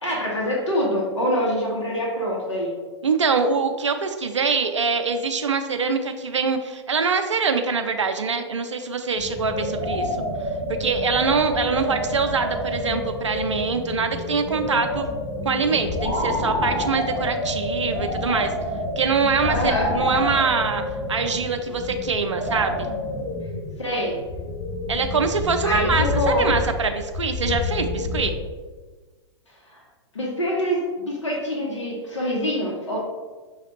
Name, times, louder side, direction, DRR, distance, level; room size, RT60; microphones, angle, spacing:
voice 1, 0.0-2.7 11.8-11.9 19.5-19.9 23.8-24.2 25.6-26.5 29.7-29.8 30.1-33.0, equal, 80° left, -3 dB, 1.0 m, -25 dB
voice 2, 3.0-10.2 10.7-15.1 15.4-18.5 19.0-20.8 21.1-22.9 24.9-28.4, right 5 dB, 85° right, 7 dB, 0.4 m, -24 dB
sound 1, 9.1-28.3, left 2 dB, 60° left, 1.3 m, -28 dB
5.8 x 2.4 x 3.0 m, 1.3 s
figure-of-eight pair, 105°, 15 cm